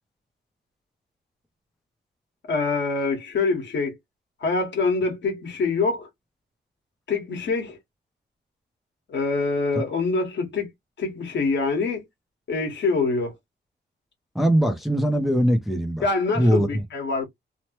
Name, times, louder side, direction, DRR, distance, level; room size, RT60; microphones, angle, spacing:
voice 1, 2.5-4.0 4.4-6.1 7.1-7.8 9.1-10.7 11.0-12.0 12.5-13.3 16.0-17.3, left 4 dB, 75° left, 1.4 m, -25 dB
voice 2, 14.3-16.0 16.4-16.8, equal, ahead, 0.5 m, -21 dB
3.1 x 2.1 x 2.9 m
wide cardioid pair, 150°, 19 cm